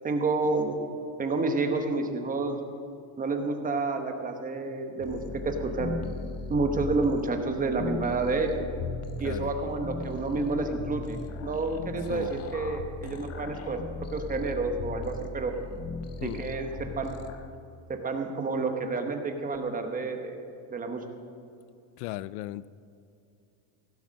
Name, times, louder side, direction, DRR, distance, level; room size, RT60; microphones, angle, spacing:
voice 1, 0.0-0.8 1.2-2.6 3.2-5.9 6.5-8.7 9.2-13.8 14.1-15.5 16.2-16.7 17.0-17.2 17.9-20.4 20.7-21.0, right 3 dB, 20° right, 5 dB, 1.0 m, -29 dB
sound 1, 5.0-17.5, left 4 dB, 30° left, 0.8 m, -37 dB
voice 2, 22.0-22.7, left 16 dB, 80° left, 18 dB, 0.5 m, -36 dB
16.5 x 7.8 x 6.4 m, 2.5 s
cardioid pair, 155°, 46 cm